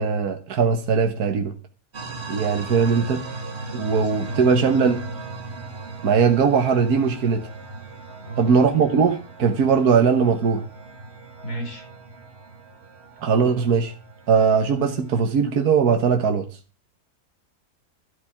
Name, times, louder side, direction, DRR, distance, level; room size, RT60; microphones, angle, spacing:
voice 1, 0.0-1.5 2.3-3.2 3.7-5.0 6.0-7.5 8.4-10.6 13.2-13.9 14.3-16.5, right 6 dB, 75° right, 1.8 m, -20 dB
sound 1, 1.9-15.2, right 3 dB, 45° right, 2.4 m, -38 dB
voice 2, 3.9-5.2 8.2-8.5 11.4-11.8, right 1 dB, 80° left, 5.4 m, -34 dB
13.0 x 8.1 x 7.2 m
omnidirectional pair, 1.6 m